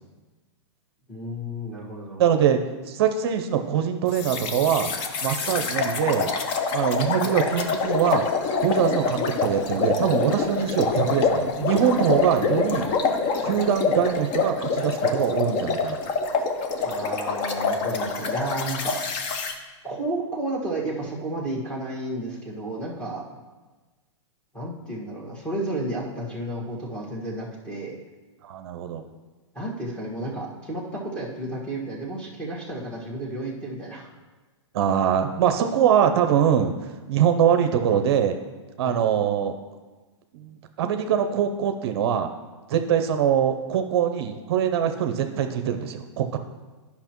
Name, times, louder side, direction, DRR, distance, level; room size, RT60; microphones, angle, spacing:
voice 1, 1.1-2.3 16.8-19.0 19.8-23.2 24.5-28.0 29.5-34.1 38.8-39.0, right 1 dB, 5° left, -5 dB, 1.6 m, -32 dB
voice 2, 2.2-2.6 2.8-4.9 5.2-6.3 6.7-8.2 8.6-12.9 13.4-16.0 28.4-29.0 34.7-38.4 38.8-39.5 40.3-42.3 42.7-46.4, right 9 dB, 55° right, 6 dB, 0.6 m, -23 dB
sound 1, 4.1-19.5, left 4 dB, 35° left, 0.7 m, -26 dB
9.9 x 5.6 x 3.0 m, 1.3 s
hypercardioid pair, 135°, 16 cm